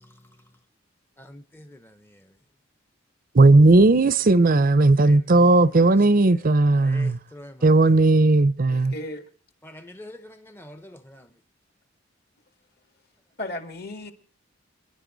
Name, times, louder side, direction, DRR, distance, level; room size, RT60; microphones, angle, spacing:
voice 1, 1.2-1.9 5.0-6.0 6.7-7.7 9.6-10.2 10.5-11.3, left 1 dB, 10° left, 0.7 m, -44 dB
voice 2, 3.3-7.2 7.6-8.9, right 2 dB, 45° right, 0.6 m, -16 dB
voice 3, 8.7-9.2 13.4-14.1, left 1 dB, 50° left, 2.2 m, -35 dB
30.0 x 11.0 x 4.0 m
head